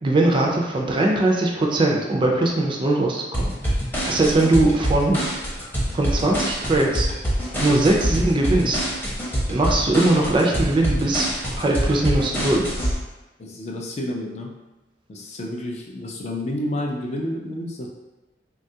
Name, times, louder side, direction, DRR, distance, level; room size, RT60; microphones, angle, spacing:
voice 1, 0.0-3.5 4.0-5.2 5.9-7.1 7.6-8.8 9.5-12.7, right 2 dB, 30° right, -1 dB, 0.4 m, -20 dB
sound 1, 3.3-12.9, equal, 10° left, 0.7 m, -25 dB
voice 2, 13.4-14.5 15.1-17.9, left 1 dB, 40° left, 1 dB, 0.4 m, -30 dB
3.3 x 2.3 x 2.7 m, 1.1 s
head